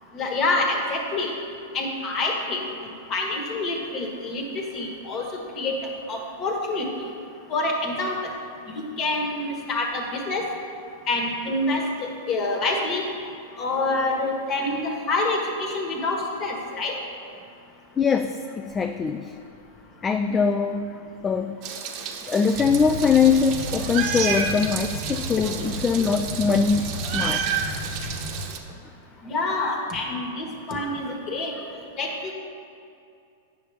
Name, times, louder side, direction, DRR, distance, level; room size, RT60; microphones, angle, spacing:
voice 1, 0.1-1.3 1.7-2.7 3.1-4.4 4.7-5.2 5.5-5.7 6.1-6.8 7.5-8.3 8.7-10.4 11.1-13.0 13.6-16.9 29.2-31.5 32.0-32.1, left 2 dB, 35° left, 1 dB, 1.4 m, -26 dB
voice 2, 18.0-19.3 20.0-21.6 22.3-27.5, left 5 dB, 20° left, 6 dB, 0.3 m, -22 dB
Meow, 21.6-28.6, right 7 dB, 45° right, 0.8 m, -31 dB
sound 1, 22.5-28.4, equal, 65° left, 1.4 m, -34 dB
9.0 x 6.6 x 3.4 m, 2.5 s
hypercardioid pair, 120°, 0 cm